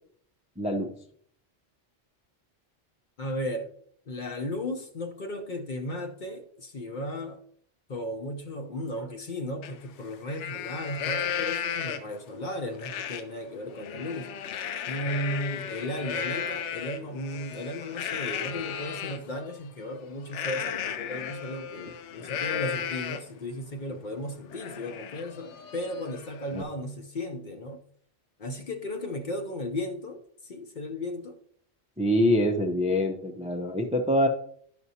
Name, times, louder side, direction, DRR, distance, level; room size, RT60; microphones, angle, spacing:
voice 1, 0.6-0.9 26.5-26.6 32.0-34.3, left 1 dB, 10° right, 0.5 m, -25 dB
voice 2, 3.2-3.7 4.1-7.4 7.9-14.3 14.8-27.8 28.4-31.4, left 1 dB, 50° left, 0.8 m, -35 dB
Livestock farm animals working animals, 9.6-9.7 10.1-12.2 12.8-13.2 13.6-19.2 20.3-23.4 23.8-23.9 24.3-26.6, left 8 dB, 85° left, 0.9 m, -34 dB
11.0 x 6.0 x 2.8 m
omnidirectional pair, 1.2 m